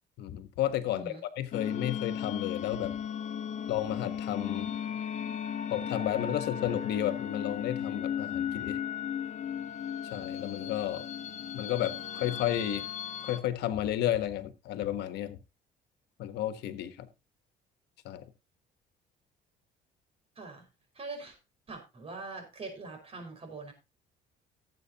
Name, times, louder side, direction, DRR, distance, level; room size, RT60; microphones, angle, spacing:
voice 1, 0.2-2.9 3.7-4.7 5.7-8.8 10.0-11.0 11.5-12.8 13.2-15.4 16.2-17.1 18.0-18.2, left 12 dB, 80° left, 11 dB, 1.3 m, -32 dB
voice 2, 0.9-1.2 20.4-20.7 20.9-21.4 21.7-23.7, right 3 dB, 35° right, 5 dB, 5.4 m, -43 dB
sound 1, 1.5-13.4, left 8 dB, 45° left, 1.5 m, -36 dB
18.5 x 7.9 x 2.9 m, 0.25 s
cardioid pair, 110°, 17 cm